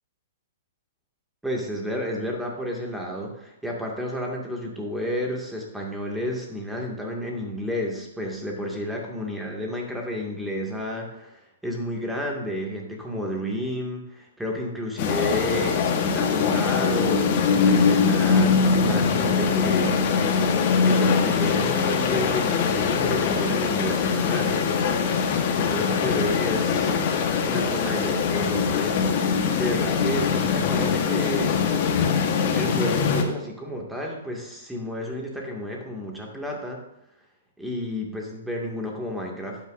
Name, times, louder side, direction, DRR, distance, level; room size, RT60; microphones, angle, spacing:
voice 1, 1.4-20.0 20.8-24.7 25.6-26.9 27.5-29.0 29.5-31.6 32.5-36.8 37.6-39.6, equal, 5° right, -1 dB, 2.1 m, -31 dB
sound 1, 15.0-33.2, left 5 dB, 45° left, 1.4 m, -22 dB
12.0 x 9.3 x 2.6 m, 0.82 s
hypercardioid pair, 125°, 0 cm